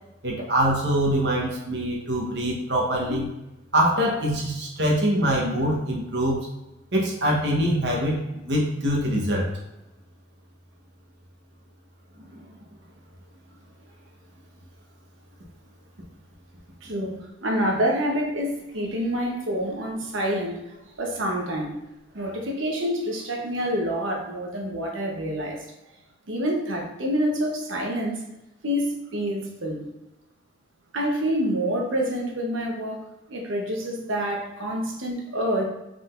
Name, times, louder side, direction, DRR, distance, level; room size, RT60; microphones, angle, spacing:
voice 1, 0.2-3.4 3.7-6.5 6.9-9.5 12.3-12.4 22.2-22.4, equal, 60° right, -2 dB, 1.1 m, -24 dB
voice 2, 16.8-21.8 22.1-25.7 26.3-28.2 28.6-29.9 30.9-33.0 33.3-35.7, equal, 80° right, 0 dB, 1.0 m, -27 dB
5.0 x 3.8 x 2.5 m, 0.96 s
head